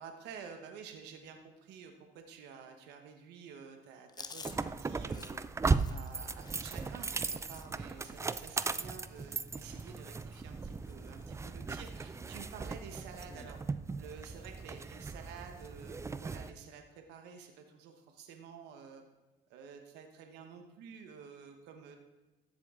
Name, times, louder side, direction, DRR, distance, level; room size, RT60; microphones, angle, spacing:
voice 1, 0.0-5.4 5.9-13.6 14.0-19.0 19.5-22.0, right 6 dB, 85° right, 5 dB, 1.2 m, -50 dB
Chewing mastication, 4.1-8.3 8.6-8.9 9.1-10.1 10.3-10.6 10.9-11.6 12.0-12.1 13.2-13.6, left 4 dB, 25° left, 0.7 m, -52 dB
sound 1, 4.4-16.5, right 4 dB, 15° right, 0.4 m, -37 dB
13.5 x 7.6 x 3.7 m, 1.1 s
cardioid pair, 110°, 17 cm